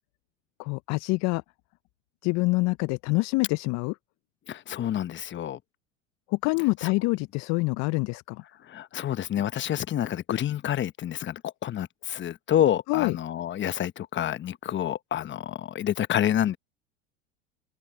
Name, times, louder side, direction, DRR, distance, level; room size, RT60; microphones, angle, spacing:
voice 1, 0.6-1.4 2.2-3.9 6.3-8.4 12.9-13.2, left 25 dB, 45° left, 0.6 m, -26 dB
voice 2, 4.5-5.6 6.8-6.9 8.7-16.6, left 11 dB, 30° left, 1.0 m, -28 dB
open air
hypercardioid pair, 90°, 38 cm